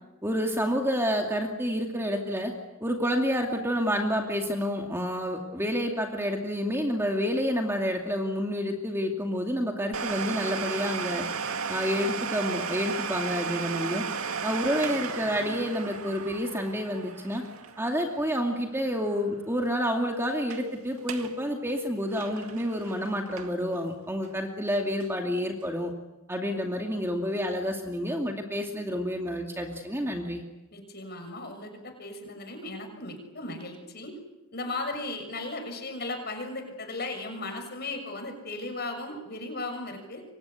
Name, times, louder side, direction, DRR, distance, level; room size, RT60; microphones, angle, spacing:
voice 1, 0.2-2.5 2.8-11.3 11.7-14.0 14.4-17.5 17.8-25.9 26.3-30.4, equal, 10° right, 2 dB, 2.4 m, -29 dB
Domestic sounds home sounds, 9.9-19.4 19.6-19.7 20.3-20.7 21.0-21.4 21.7-23.8 24.2-24.3 25.0-25.1, right 5 dB, 75° right, 2.1 m, -35 dB
voice 2, 30.7-34.2 34.5-40.2, left 2 dB, 45° left, 5 dB, 6.6 m, -36 dB
29.5 x 24.5 x 8.4 m, 1.1 s
head